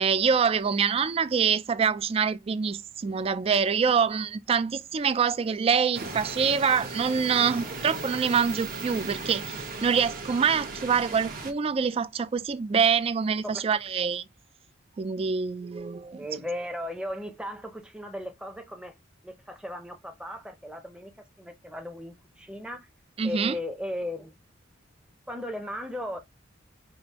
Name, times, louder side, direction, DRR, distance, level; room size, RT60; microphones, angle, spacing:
voice 1, 0.0-14.2 15.0-16.2 23.2-23.6, right 6 dB, 30° right, 0.3 m, -25 dB
sound 1, 5.9-11.5, right 3 dB, 50° right, 1.0 m, -37 dB
voice 2, 16.2-18.9 19.2-22.9 23.2-24.3 25.3-26.2, left 1 dB, 5° right, 0.7 m, -36 dB
5.0 x 2.5 x 2.9 m
head